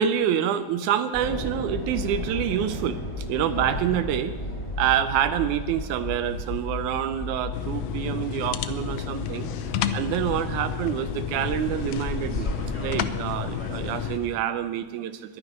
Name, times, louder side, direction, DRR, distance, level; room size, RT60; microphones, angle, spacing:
voice 1, 0.0-4.3 4.8-9.5 9.9-12.5 12.8-15.4, right 9 dB, 85° right, 10 dB, 2.1 m, -27 dB
sound 1, 1.1-14.3, left 1 dB, 25° left, 3.1 m, -34 dB
sound 2, 7.5-14.2, left 9 dB, 75° left, 1.6 m, -31 dB
22.0 x 9.5 x 5.3 m, 1.4 s
omnidirectional pair, 3.4 m